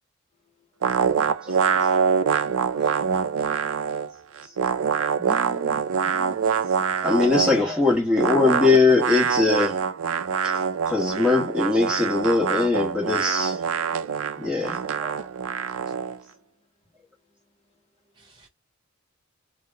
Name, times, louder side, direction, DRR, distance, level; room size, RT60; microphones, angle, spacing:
sound 1, 0.8-4.1 4.4-7.7 8.1-16.2, right 6 dB, 75° right, 0.4 m, -25 dB
voice 1, 3.4-4.7 10.6-10.8 14.2-14.5 15.1-16.4, left 6 dB, 30° left, 0.6 m, -65 dB
voice 2, 5.2-5.8 7.3-7.8 15.9-16.0 18.2-18.5, equal, 20° right, 0.5 m, -39 dB
voice 3, 6.1-6.5 7.0-9.8 10.4-10.5 10.9-13.6 14.4-15.2 15.6-15.7, left 3 dB, 5° right, 1.1 m, -22 dB
2.9 x 2.1 x 3.3 m
head